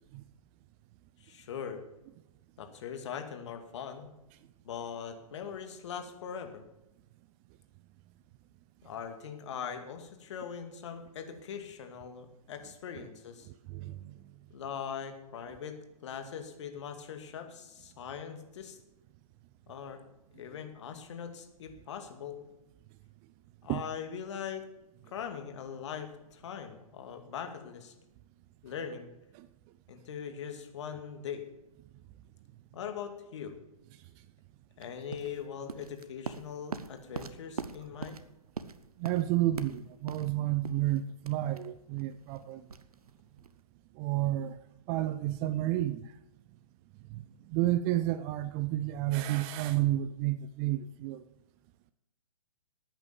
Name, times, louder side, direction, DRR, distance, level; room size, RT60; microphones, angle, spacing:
voice 1, 1.2-1.8 2.6-4.1 4.6-6.6 8.8-13.5 14.5-15.8 16.0-18.8 19.7-20.0 20.3-22.4 23.6-24.6 25.1-27.9 28.6-29.1 29.9-31.5 32.7-33.5 34.8-38.2, left 7 dB, 50° left, 2.4 m, -41 dB
voice 2, 13.7-14.1 23.7-23.8 29.3-29.5 39.0-42.6 44.0-44.6 44.9-46.1 47.1-47.2 47.5-51.2, right 14 dB, 20° right, 0.4 m, -31 dB
sound 1, 34.8-43.6, right 5 dB, 80° right, 1.1 m, -43 dB
13.0 x 9.0 x 7.0 m
figure-of-eight pair, 135°, 19 cm